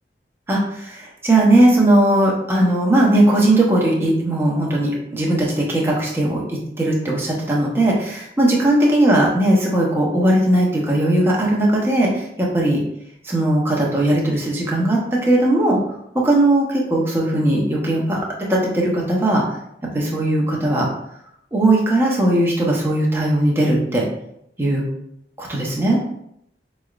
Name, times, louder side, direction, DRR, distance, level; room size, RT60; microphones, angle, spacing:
voice 1, 0.5-12.8 13.2-15.8 16.1-18.2 18.5-19.4 19.9-20.9 21.5-24.1 24.6-24.8 25.4-26.0, right 1 dB, 15° right, -3 dB, 0.9 m, -18 dB
5.6 x 3.1 x 2.4 m, 0.74 s
head